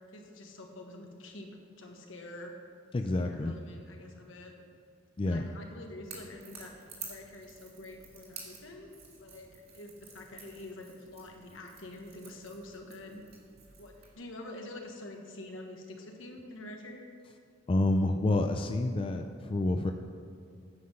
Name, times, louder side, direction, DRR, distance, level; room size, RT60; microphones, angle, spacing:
voice 1, 0.1-2.5 3.2-4.5 5.3-6.7 7.1-13.2 13.8-17.1, left 1 dB, 80° left, 2 dB, 1.4 m, -46 dB
voice 2, 2.9-3.5 5.2-5.5 17.7-19.9, left 2 dB, 25° left, 5 dB, 0.4 m, -28 dB
Crackle / Crack, 6.0-14.1, right 5 dB, 55° right, 2.3 m, -51 dB
9.7 x 5.6 x 6.4 m, 2.3 s
head